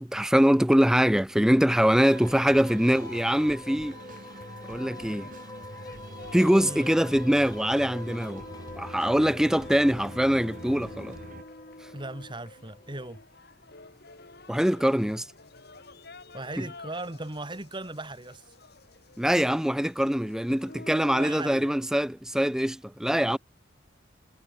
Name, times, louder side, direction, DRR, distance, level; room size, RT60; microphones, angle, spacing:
voice 1, 0.0-4.0 4.7-5.3 6.3-8.4 8.8-11.2 14.5-15.3 16.6-16.7 19.2-23.4, equal, 5° right, 0.5 m, -23 dB
sound 1, 1.7-13.1, left 2 dB, 20° left, 3.0 m, -46 dB
sound 2, 1.9-11.4, right 1 dB, 45° right, 2.7 m, -45 dB
sound 3, 2.7-21.7, left 2 dB, 60° left, 3.5 m, -49 dB
voice 2, 6.6-6.9 11.9-13.2 16.3-18.4 21.2-21.7, right 2 dB, 25° right, 2.6 m, -37 dB
head